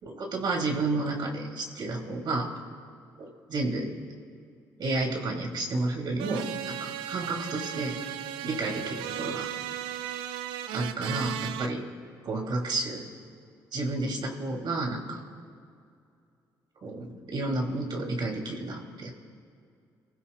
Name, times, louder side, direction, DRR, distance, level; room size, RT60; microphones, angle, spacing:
voice 1, 0.0-2.5 3.2-3.9 4.8-6.8 7.1-8.0 8.4-9.5 10.7-11.8 12.2-13.0 13.7-15.2 16.8-19.1, right 2 dB, 60° right, 1 dB, 3.1 m, -31 dB
sound 1, 6.2-11.7, right 10 dB, 90° right, 0.5 m, -36 dB
28.0 x 15.5 x 2.4 m, 2.3 s
supercardioid pair, 55°, 9 cm